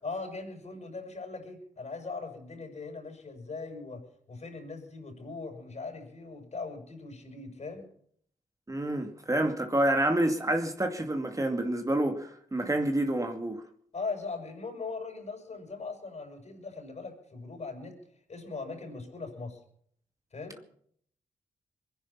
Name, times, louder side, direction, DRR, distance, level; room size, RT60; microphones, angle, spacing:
voice 1, 0.0-7.9 13.9-18.0 18.3-19.6 20.3-20.6, left 4 dB, 55° left, 6.8 m, -40 dB
voice 2, 8.7-13.6, right 1 dB, 25° right, 2.3 m, -28 dB
23.0 x 10.5 x 5.8 m
supercardioid pair, 45°, 14 cm